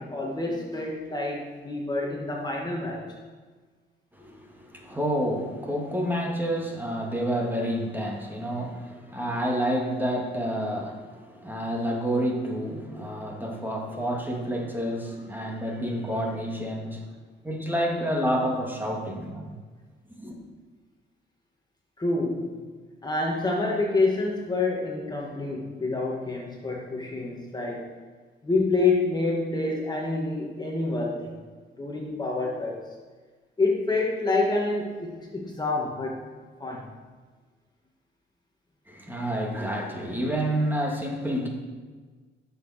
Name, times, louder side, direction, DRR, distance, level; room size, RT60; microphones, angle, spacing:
voice 1, 0.0-3.1 22.0-22.6 23.0-27.9 28.4-31.3 31.8-32.8 33.6-36.2 36.6-36.9, left 3 dB, 20° left, -2 dB, 1.6 m, -27 dB
voice 2, 4.1-17.0 17.4-19.5 20.2-20.4 38.9-41.5, equal, 10° right, 0 dB, 2.2 m, -29 dB
15.5 x 7.0 x 4.3 m, 1.4 s
cardioid pair, 90°, 20 cm